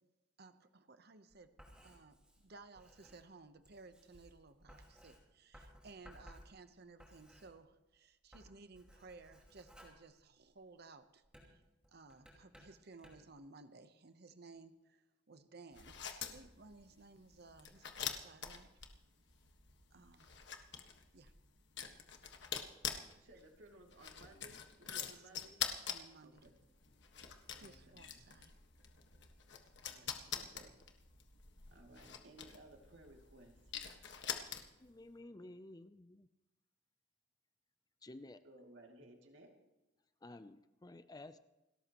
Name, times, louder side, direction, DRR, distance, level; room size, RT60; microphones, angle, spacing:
voice 1, 0.4-1.5 1.8-11.6 11.9-18.7 19.9-20.6 21.1-21.3 24.9-25.3 25.8-26.5 27.5-28.5, right 3 dB, 60° right, 10 dB, 1.0 m, -58 dB
Writing, 1.3-7.9 8.2-10.7 11.2-13.4, equal, 5° right, 4.7 m, -61 dB
sound 1, 15.7-34.9, left 8 dB, 65° left, 1.6 m, -46 dB
voice 2, 23.1-25.6 26.2-26.6 27.6-28.0 29.8-30.7 31.7-33.6 35.3-35.4 38.4-39.5, right 1 dB, 75° right, 2 dB, 2.6 m, -60 dB
voice 3, 34.8-36.3 38.0-38.4 40.2-41.4, left 2 dB, 20° left, 12 dB, 0.5 m, -53 dB
29.5 x 13.5 x 3.1 m, 0.98 s
head